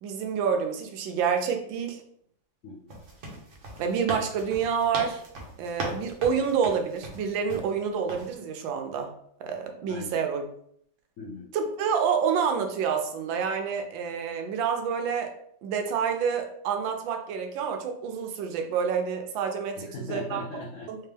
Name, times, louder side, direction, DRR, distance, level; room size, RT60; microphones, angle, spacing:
voice 1, 0.0-2.0 3.8-5.2 5.6-9.1 9.4-10.4 11.5-15.3 15.6-20.5 20.9-21.0, right 6 dB, 85° right, 5 dB, 1.4 m, -28 dB
voice 2, 2.6-2.9 9.9-10.2 11.2-11.5 19.8-20.9, left 2 dB, 70° left, -2 dB, 0.7 m, -39 dB
sound 1, 2.9-7.7 8.1-8.3, right 2 dB, 50° right, 1.1 m, -38 dB
3.4 x 3.3 x 3.3 m, 0.68 s
omnidirectional pair, 2.0 m